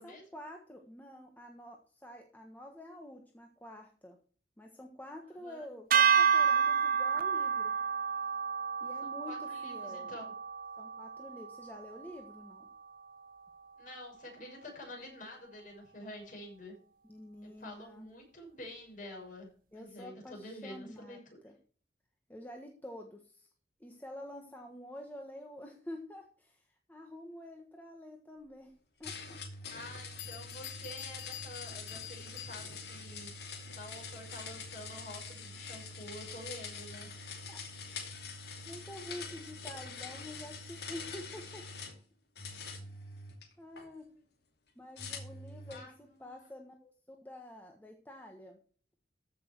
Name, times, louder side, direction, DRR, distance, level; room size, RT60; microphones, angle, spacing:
voice 1, 0.0-4.2 4.6-7.7 8.8-10.1 10.8-12.7 17.0-18.1 19.7-21.5 22.3-23.5 23.8-28.7 29.0-29.4 37.5-37.6 38.6-41.6 43.6-44.1 44.7-48.6, left 1 dB, 10° left, 2 dB, 1.4 m, -48 dB
voice 2, 5.4-5.7 9.0-10.3 13.8-16.8 17.4-21.4 29.7-33.4 33.7-37.1 45.7-46.4, left 1 dB, 45° left, 0 dB, 6.3 m, -48 dB
sound 1, 5.9-12.2, right 6 dB, 50° right, 0.7 m, -30 dB
Bell, 29.0-29.1 29.8-29.9 30.2-33.0, left 13 dB, 90° left, 1.6 m, -47 dB
sound 2, 29.0-42.0 42.4-43.9 45.0-45.9, left 4 dB, 65° left, 2.7 m, -45 dB
14.5 x 6.3 x 4.6 m, 0.43 s
head